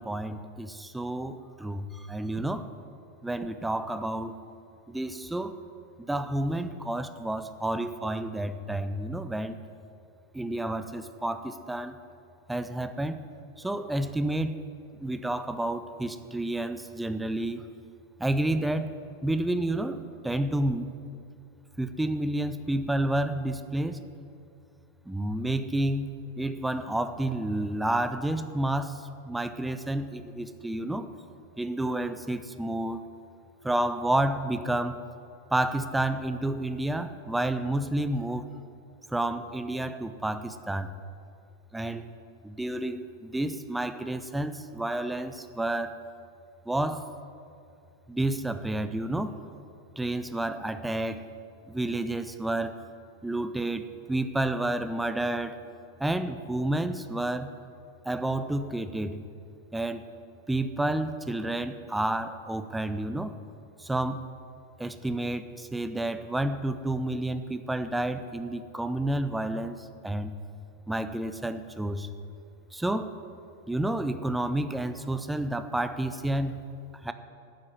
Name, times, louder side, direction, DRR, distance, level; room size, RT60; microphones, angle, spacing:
voice 1, 0.0-2.7 3.2-4.4 4.9-5.6 6.0-9.6 10.3-12.0 12.5-13.2 13.6-14.6 15.0-17.7 18.2-18.9 19.2-20.9 21.8-24.0 25.1-31.1 31.6-33.0 33.6-35.0 35.5-38.5 39.1-40.9 41.7-42.0 42.4-46.0 46.7-47.1 48.1-49.4 50.0-51.2 51.7-52.8 53.2-55.6 56.0-57.5 58.0-59.2 59.7-60.1 60.5-63.4 63.8-64.3 64.8-70.3 70.9-72.1 72.7-73.1 73.7-76.6 77.0-77.1, right 1 dB, 5° right, 10 dB, 0.6 m, -30 dB
9.4 x 7.7 x 9.2 m, 2.4 s
figure-of-eight pair, 90°, 0 cm